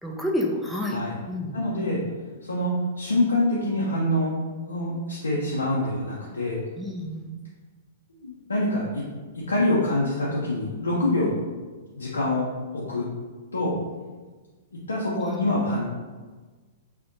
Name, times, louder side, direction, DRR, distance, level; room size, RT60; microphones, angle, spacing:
voice 1, 0.0-1.0 1.3-1.6 6.8-7.3 15.3-15.5, left 1 dB, ahead, -2 dB, 0.3 m, -29 dB
voice 2, 1.5-2.0 2.4-6.6 8.2-8.9 9.3-11.4 12.0-12.5 12.7-13.1 13.5-13.8 14.9-15.8, left 1 dB, 85° left, -6 dB, 0.4 m, -25 dB
2.5 x 2.1 x 2.5 m, 1.4 s
hypercardioid pair, 110°, 0 cm